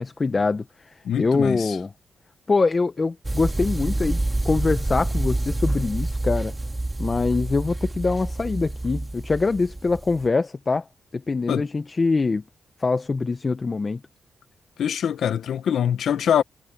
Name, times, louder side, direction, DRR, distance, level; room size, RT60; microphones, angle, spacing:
voice 1, 0.0-1.9 2.5-6.5 7.0-10.9 11.1-12.4 12.8-14.0, left 3 dB, 35° left, 0.9 m, -24 dB
voice 2, 1.0-1.8 11.5-11.6 14.8-16.4, left 9 dB, 80° left, 1.3 m, -23 dB
sound 1, 3.2-10.3, right 2 dB, 15° right, 2.6 m, -27 dB
cardioid pair, 90°, 0 cm